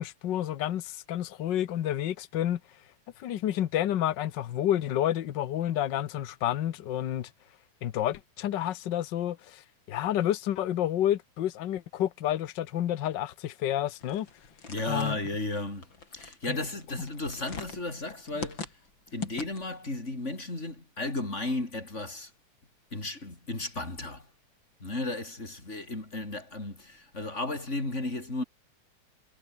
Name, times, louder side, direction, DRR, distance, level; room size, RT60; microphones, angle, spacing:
voice 1, 0.0-2.6 3.2-7.3 7.8-14.3 14.9-15.2 16.5-16.6, left 11 dB, 90° left, 0.9 m, -29 dB
sound 1, 14.0-19.8, left 4 dB, 40° left, 4.0 m, -43 dB
voice 2, 14.7-15.9 16.1-18.7 19.1-22.3 22.9-24.3 24.8-28.4, left 2 dB, 20° left, 5.3 m, -34 dB
omnidirectional pair, 3.4 m